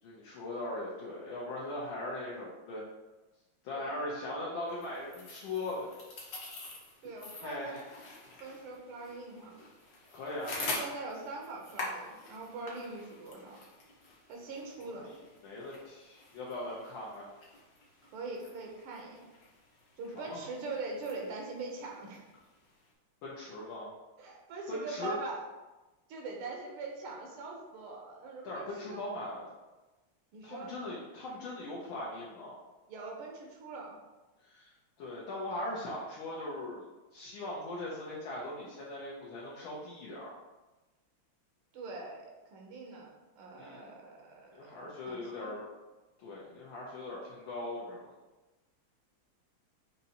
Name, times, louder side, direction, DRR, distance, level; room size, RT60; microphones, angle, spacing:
voice 1, 0.0-2.9 3.6-5.9 7.4-7.9 10.1-10.5 14.8-15.2 15.4-17.3 20.1-20.4 23.2-23.9 24.7-25.2 28.4-29.5 30.4-32.5 34.4-34.7 35.0-36.9 37.1-40.3 43.6-43.9 44.5-45.6 46.2-48.1, left 2 dB, 70° left, -6 dB, 1.6 m, -40 dB
sound 1, 4.7-22.9, left 2 dB, 55° left, 1.3 m, -46 dB
voice 2, 7.0-7.8 8.4-9.6 10.4-13.6 14.3-15.1 18.1-19.3 20.0-22.2 24.2-25.4 26.1-29.0 30.3-30.7 32.9-34.0 41.7-44.8 45.0-45.5, right 3 dB, 80° right, 0 dB, 1.7 m, -42 dB
6.7 x 2.7 x 2.8 m, 1.1 s
omnidirectional pair, 2.4 m